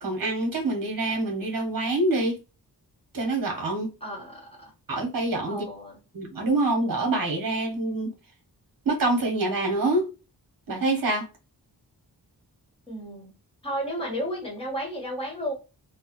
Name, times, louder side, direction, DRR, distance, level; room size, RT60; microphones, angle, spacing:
voice 1, 0.0-2.4 3.1-3.9 4.9-5.7 6.1-8.1 8.8-10.1 10.7-11.2, right 2 dB, 55° right, 1.1 m, -26 dB
voice 2, 4.0-4.7 5.5-6.0 12.9-13.3 13.6-15.5, equal, 15° left, 1.3 m, -33 dB
3.1 x 2.2 x 2.9 m
wide cardioid pair, 120°, 39 cm